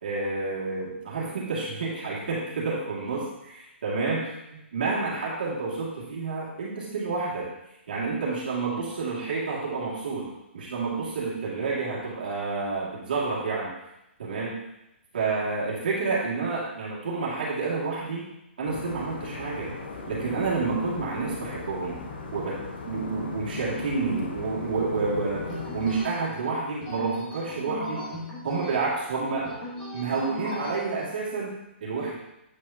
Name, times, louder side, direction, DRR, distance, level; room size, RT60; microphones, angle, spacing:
voice 1, 0.0-3.3 3.5-7.5 7.9-13.7 14.2-14.6 15.1-18.2 18.6-19.7 20.1-22.0 22.3-22.6 22.8-25.4 25.7-28.1 28.4-29.5 29.9-32.2, right 4 dB, 50° right, -6 dB, 2.2 m, -29 dB
sound 1, 18.7-26.0, left 4 dB, 50° left, 0.9 m, -38 dB
sound 2, 25.5-30.8, equal, 15° left, 1.4 m, -38 dB
8.1 x 4.8 x 2.8 m, 0.86 s
hypercardioid pair, 175°, 7 cm